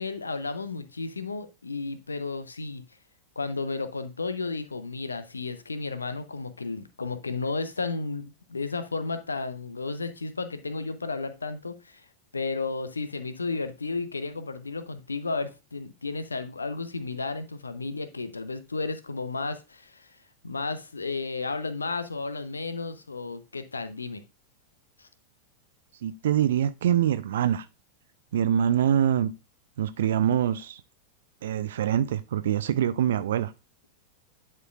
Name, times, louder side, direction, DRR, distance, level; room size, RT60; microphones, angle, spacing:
voice 1, 0.0-2.8 3.4-12.1 12.3-20.2 20.4-24.2 25.0-25.1, left 3 dB, 75° left, 0.7 m, -33 dB
voice 2, 26.0-27.7 28.3-29.3 29.8-30.8 31.4-33.5, right 10 dB, 60° right, 0.5 m, -24 dB
11.0 x 4.5 x 2.4 m
figure-of-eight pair, 90°, 0 cm